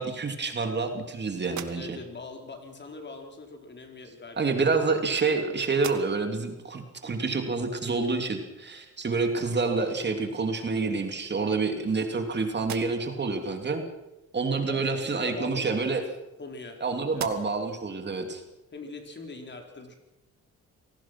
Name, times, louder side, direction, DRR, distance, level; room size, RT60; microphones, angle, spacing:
voice 1, 0.0-2.0 4.4-13.8 14.3-16.0 16.8-18.4, right 4 dB, 35° right, 5 dB, 3.0 m, -28 dB
sound 1, 1.4-2.3 3.4-3.6 4.5-5.4 5.7-6.4 6.9-7.0 9.7-9.8 10.2-10.9 11.5-12.2 12.5-13.3 15.3-16.7 17.1-17.8, right 10 dB, 70° right, 1.8 m, -44 dB
voice 2, 1.7-4.6 14.7-16.0 16.4-16.8 17.1-17.2 18.7-19.9, left 3 dB, 35° left, 3 dB, 4.3 m, -41 dB
26.5 x 18.5 x 6.1 m, 0.97 s
cardioid pair, 90°, 30 cm